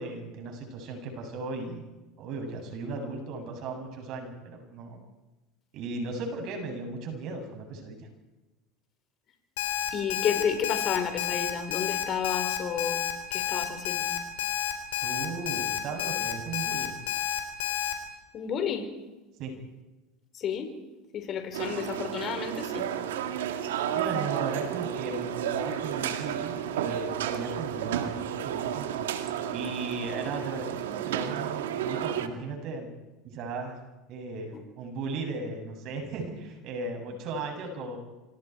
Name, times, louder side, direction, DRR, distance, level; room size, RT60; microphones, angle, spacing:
voice 1, 0.0-1.9 2.2-5.0 5.7-8.1 15.0-16.9 19.4-19.5 23.9-28.9 29.5-32.9 33.2-33.8 34.1-38.0, right 3 dB, 55° right, 3 dB, 7.7 m, -36 dB
Alarm, 9.6-17.9, left 11 dB, 85° left, 4.0 m, -30 dB
voice 2, 9.9-13.0 13.3-14.1 18.3-18.9 20.3-20.7 21.1-22.9 34.5-34.6, left 8 dB, 45° left, 6 dB, 4.4 m, -31 dB
sound 1, 21.5-32.3, right 9 dB, 85° right, 2.0 m, -32 dB
28.0 x 26.0 x 4.7 m, 1.1 s
hypercardioid pair, 95°, 0 cm